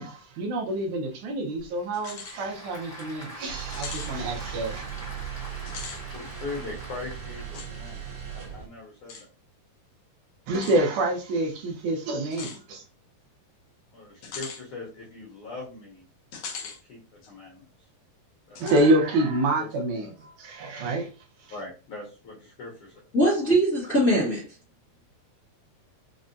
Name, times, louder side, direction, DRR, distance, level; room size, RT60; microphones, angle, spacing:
voice 1, 0.0-4.8 10.5-12.8 18.6-21.1 21.4-21.5, right 1 dB, 75° right, 2.0 m, -27 dB
Applause / Crowd, 1.6-7.8, equal, 20° left, 0.7 m, -44 dB
sound 1, 1.9-2.4 2.8-2.9 3.7-4.1 5.6-6.0 7.5-7.7 9.1-9.2 10.5-10.8 12.3-12.6 14.2-14.6 16.3-16.8 17.2-17.3 18.6-18.9, left 5 dB, 90° left, 1.3 m, -39 dB
sound 2, 3.5-8.7, right 9 dB, 60° right, 1.3 m, -38 dB
voice 2, 6.1-8.0 8.3-9.3 13.9-16.0 16.6-17.9 18.5-18.6 18.8-18.9 19.6-19.7 21.5-23.0, left 3 dB, 70° left, 1.3 m, -40 dB
voice 3, 23.1-24.5, right 1 dB, 50° left, 1.0 m, -21 dB
5.2 x 2.2 x 2.5 m
omnidirectional pair, 3.7 m